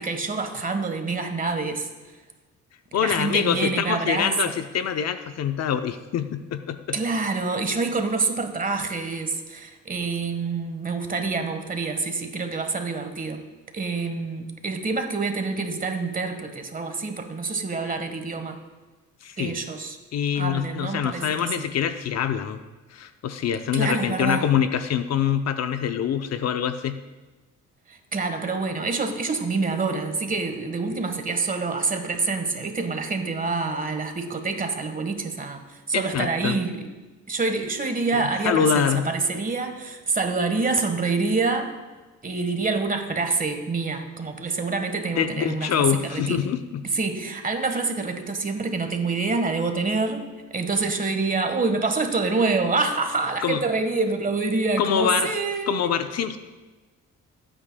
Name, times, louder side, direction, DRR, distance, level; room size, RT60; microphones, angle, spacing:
voice 1, 0.0-1.9 2.9-4.3 6.9-13.4 13.7-18.6 19.4-20.0 20.3-21.6 23.7-24.5 27.9-35.6 35.9-36.8 37.3-41.7 42.2-46.4 46.9-50.2 50.5-55.9, right 3 dB, 30° right, 6 dB, 1.4 m, -26 dB
voice 2, 2.9-7.0 19.2-19.5 20.1-22.6 22.9-27.0 35.9-36.6 38.1-39.1 45.2-46.9 53.4-53.6 54.8-55.3 55.7-56.4, left 8 dB, 60° left, 9 dB, 0.7 m, -25 dB
17.5 x 8.9 x 2.3 m, 1.3 s
cardioid pair, 90°, 30 cm